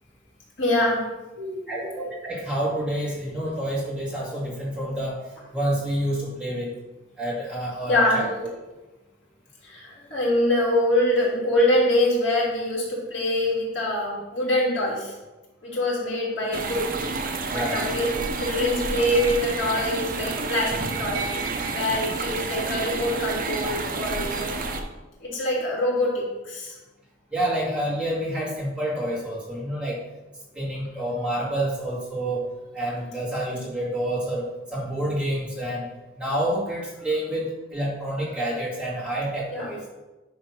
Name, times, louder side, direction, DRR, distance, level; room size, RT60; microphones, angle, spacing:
voice 1, 0.6-1.0 1.4-2.0 7.9-8.2 9.6-15.1 15.6-16.9 17.2-18.1 18.4-21.3 21.7-24.6 25.2-26.7 32.8-32.9 39.5-39.7, left 1 dB, 75° left, -5 dB, 3.0 m, -24 dB
voice 2, 1.7-5.2 5.5-6.7 7.2-8.5 17.5-17.8 27.3-30.0 30.5-32.4 32.7-34.4 34.7-35.8 36.2-39.8, right 1 dB, 5° right, -7 dB, 2.2 m, -28 dB
sound 1, 16.5-24.8, right 3 dB, 45° right, 0.8 m, -29 dB
10.0 x 3.4 x 5.9 m, 1.1 s
head